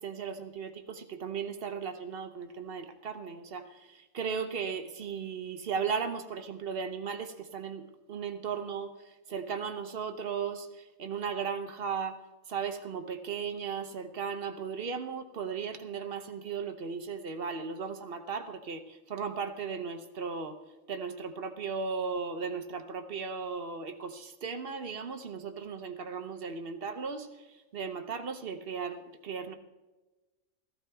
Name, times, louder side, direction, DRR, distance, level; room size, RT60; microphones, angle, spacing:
voice 1, 0.0-12.2 12.5-20.6 20.9-29.6, right 6 dB, 50° right, 9 dB, 0.9 m, -36 dB
15.0 x 14.5 x 3.4 m, 1.1 s
omnidirectional pair, 1.5 m